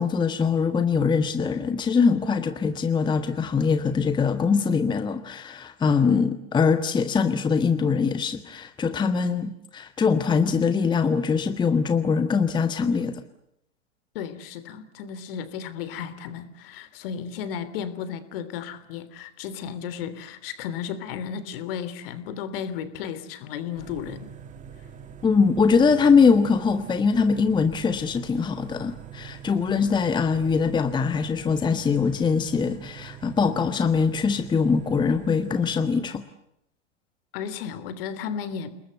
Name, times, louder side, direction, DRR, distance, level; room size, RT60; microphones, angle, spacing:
voice 1, 0.0-13.2 25.2-36.2, left 5 dB, 10° left, 10 dB, 1.2 m, -22 dB
voice 2, 14.1-24.3 37.3-38.8, left 7 dB, 50° left, 13 dB, 3.3 m, -34 dB
sound 1, 23.7-35.8, right 8 dB, 20° right, 2.7 m, -44 dB
30.0 x 20.5 x 8.0 m, 0.79 s
figure-of-eight pair, 105°, 37 cm